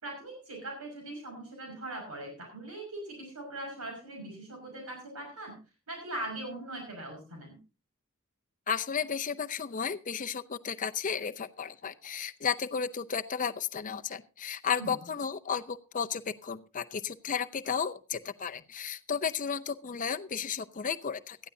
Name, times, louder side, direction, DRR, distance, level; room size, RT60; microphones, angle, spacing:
voice 1, 0.0-5.6 5.9-7.6 14.8-14.9, right 1 dB, 90° right, 1 dB, 5.8 m, -41 dB
voice 2, 8.7-21.4, left 7 dB, 35° left, 10 dB, 0.6 m, -33 dB
18.0 x 13.0 x 2.7 m, 0.32 s
head